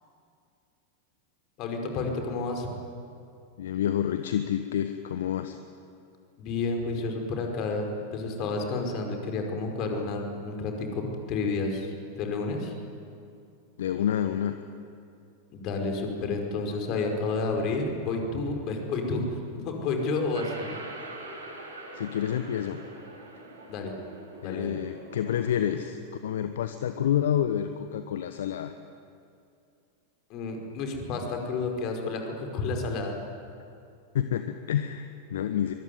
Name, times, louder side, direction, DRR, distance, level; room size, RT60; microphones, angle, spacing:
voice 1, 1.6-2.7 6.4-7.9 8.1-11.9 12.2-12.7 15.5-20.7 23.7-23.9 24.4-24.8 30.3-33.1, left 3 dB, 40° left, 3 dB, 5.1 m, -30 dB
voice 2, 3.6-5.6 13.8-14.5 21.9-22.8 24.4-28.7 34.1-35.7, left 10 dB, 60° left, 10 dB, 1.1 m, -28 dB
sound 1, 20.3-25.8, right 2 dB, 75° right, 6.7 m, -43 dB
24.0 x 23.0 x 9.6 m, 2.5 s
figure-of-eight pair, 90°, 0 cm